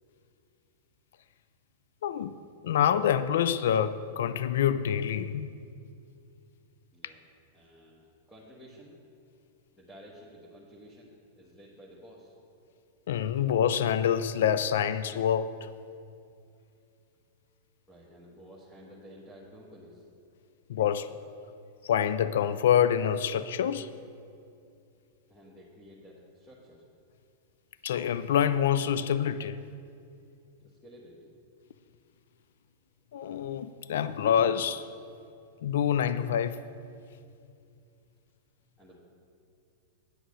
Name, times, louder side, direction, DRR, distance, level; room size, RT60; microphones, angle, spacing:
voice 1, 2.0-2.3 2.6-5.5 13.1-15.7 20.7-21.1 21.8-23.9 27.8-29.6 33.1-34.9 35.6-36.6, left 9 dB, 80° left, 14 dB, 0.3 m, -26 dB
voice 2, 7.5-9.0 9.7-12.3 17.9-20.0 25.3-26.8 30.6-31.3 38.8-39.0, equal, 5° left, -6 dB, 1.4 m, -52 dB
9.6 x 6.4 x 6.2 m, 2.5 s
hypercardioid pair, 135°, 0 cm